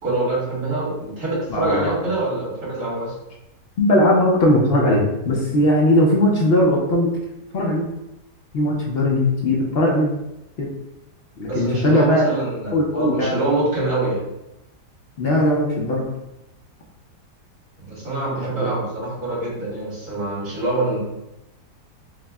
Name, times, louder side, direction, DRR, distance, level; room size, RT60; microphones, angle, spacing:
voice 1, 0.0-3.1 11.4-14.2 17.8-21.0, right 2 dB, 60° right, -8 dB, 2.2 m, -25 dB
voice 2, 1.5-1.8 3.8-7.1 7.5-7.9 8.5-10.2 10.6-10.7 11.4-12.3 12.7-13.3 15.2-16.0 18.6-18.7, left 1 dB, 60° left, -2 dB, 0.6 m, -18 dB
6.1 x 2.1 x 2.3 m, 0.91 s
omnidirectional pair, 1.8 m